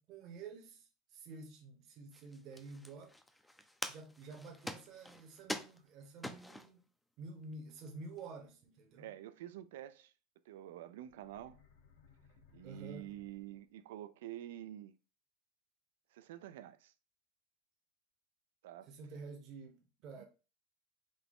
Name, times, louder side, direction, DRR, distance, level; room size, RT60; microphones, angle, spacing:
voice 1, 0.0-3.1 3.9-6.8 7.2-9.1 12.6-13.1 18.9-20.2, right 3 dB, 50° right, 0.8 m, -50 dB
sound 1, 2.1-6.8 7.4-7.5 7.8-8.3, left 1 dB, 5° left, 0.5 m, -46 dB
voice 2, 9.0-10.1 10.5-11.6 12.5-14.9 16.1-16.9 18.6-18.9 20.2-20.3, right 13 dB, 80° right, 0.3 m, -48 dB
sound 2, 11.1-13.9, left 6 dB, 75° left, 1.2 m, -64 dB
3.9 x 2.2 x 3.5 m
supercardioid pair, 110°, 0 cm